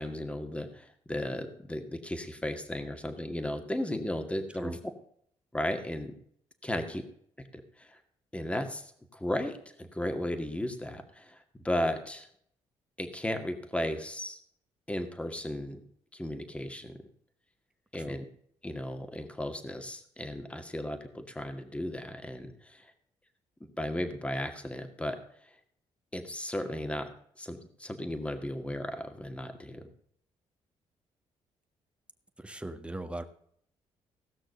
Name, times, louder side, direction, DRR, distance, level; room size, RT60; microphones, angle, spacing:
voice 1, 0.0-4.8 5.5-6.1 6.6-7.0 7.5-8.0 8.3-11.4 11.6-12.3 13.0-14.4 14.9-15.8 16.1-16.9 17.9-18.2 18.6-22.9 23.6-25.2 26.1-27.1 27.4-29.8, left 1 dB, 10° left, 6 dB, 2.1 m, -35 dB
voice 2, 32.4-33.2, right 2 dB, 10° right, 7 dB, 1.6 m, -38 dB
17.5 x 6.2 x 6.7 m, 0.65 s
cardioid pair, 70°, 11 cm